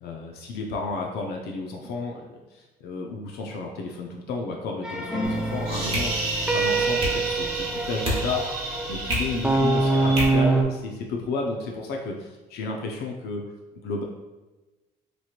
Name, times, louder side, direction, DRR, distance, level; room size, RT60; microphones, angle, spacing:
voice 1, 0.0-2.4 2.8-6.2 6.5-13.4 13.8-14.0, left 3 dB, 70° left, 1 dB, 0.5 m, -32 dB
sound 1, 4.8-10.6, right 3 dB, 5° right, 0.4 m, -25 dB
sound 2, 5.1-10.0, right 1 dB, 25° left, 0.8 m, -35 dB
sound 3, 5.2-10.2, right 1 dB, 35° right, 1.0 m, -30 dB
3.0 x 2.8 x 2.4 m, 1.1 s
cardioid pair, 110°, 17 cm